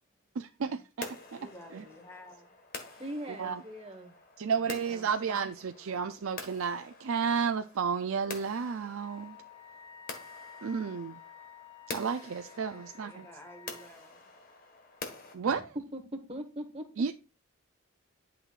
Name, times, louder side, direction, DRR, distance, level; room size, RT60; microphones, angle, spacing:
voice 1, 0.4-1.4 1.7-1.8 3.4-3.6 4.4-9.4 10.6-11.2 11.9-13.3 15.3-15.8 17.0-17.1, right 6 dB, 65° right, 0.4 m, -32 dB
sound 1, 1.0-15.4, left 3 dB, 40° left, 1.5 m, -47 dB
voice 2, 1.3-2.5 12.7-14.3, left 1 dB, 10° left, 1.1 m, -52 dB
voice 3, 2.9-4.1 4.6-5.1 15.5-15.6 15.9-16.8, equal, 25° right, 1.3 m, -41 dB
Wind instrument woodwind instrument, 8.9-13.9, left 8 dB, 75° left, 2.9 m, -52 dB
11.0 x 6.2 x 2.4 m
head